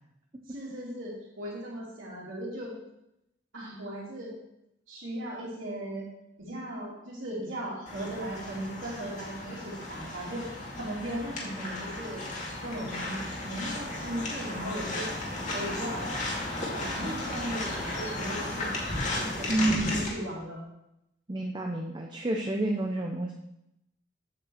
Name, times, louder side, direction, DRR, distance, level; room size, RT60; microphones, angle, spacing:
voice 1, 0.5-2.7 3.5-4.3 4.9-6.1 6.4-10.5 10.8-12.2 12.6-15.1 15.5-16.1 16.7-20.6, right 1 dB, 90° right, -8 dB, 2.9 m, -37 dB
sound 1, 7.9-20.1, left 2 dB, 40° left, 2.2 m, -35 dB
voice 2, 19.5-20.3 21.3-23.3, right 1 dB, 25° right, 2 dB, 0.7 m, -29 dB
8.3 x 5.4 x 7.2 m, 0.84 s
head